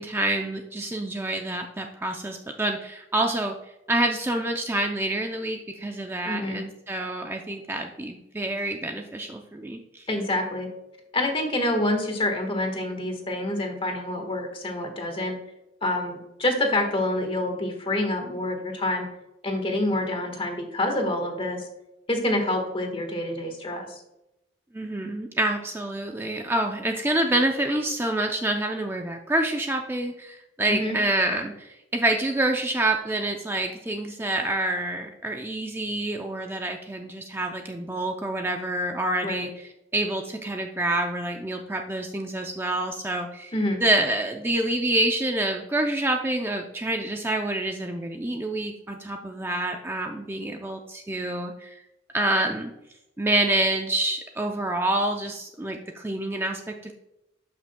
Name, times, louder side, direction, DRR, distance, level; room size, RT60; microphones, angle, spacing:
voice 1, 0.0-3.6 3.9-10.1 24.7-43.5 43.8-51.8 52.1-52.7 53.2-56.9, right 1 dB, 10° right, 3 dB, 0.4 m, -27 dB
voice 2, 6.2-6.6 10.1-10.7 11.1-15.4 15.8-19.1 19.4-21.7 22.1-24.0 30.7-31.0 39.2-39.5 43.5-43.8, left 1 dB, 30° left, 4 dB, 1.4 m, -27 dB
12.0 x 6.0 x 2.2 m, 0.90 s
head